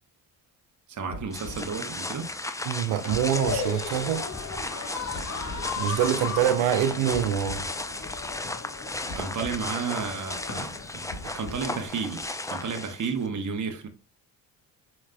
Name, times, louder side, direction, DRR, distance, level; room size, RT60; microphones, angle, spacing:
voice 1, 0.9-2.3 9.1-10.7 11.2-13.9, right 5 dB, 40° right, 1.0 m, -32 dB
sound 1, 1.1-1.7 3.1-3.7 5.1-5.7 7.1-7.7 9.1-9.6 11.1-11.8, left 1 dB, 65° left, 1.4 m, -41 dB
sound 2, 1.3-13.3, left 2 dB, 5° left, 0.4 m, -35 dB
voice 2, 2.7-4.3 5.8-7.7, right 10 dB, 75° right, 0.7 m, -25 dB
sound 3, 2.9-11.9, left 5 dB, 35° left, 1.2 m, -37 dB
4.8 x 3.1 x 2.2 m
supercardioid pair, 55°, 47 cm